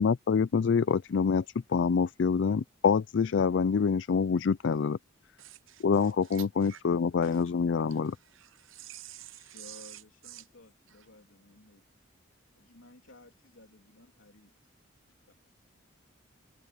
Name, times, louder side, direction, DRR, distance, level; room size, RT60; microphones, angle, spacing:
voice 1, 0.0-1.4 1.7-5.0 5.8-8.1, left 5 dB, 65° left, 0.4 m, -26 dB
voice 2, 5.4-5.8 6.3-6.4 6.7-6.8 8.7-10.0 10.3-10.4, right 14 dB, 80° right, 0.9 m, -47 dB
voice 3, 9.3-11.9 12.5-14.5 15.3-15.4, left 2 dB, 85° left, 3.1 m, -56 dB
open air
head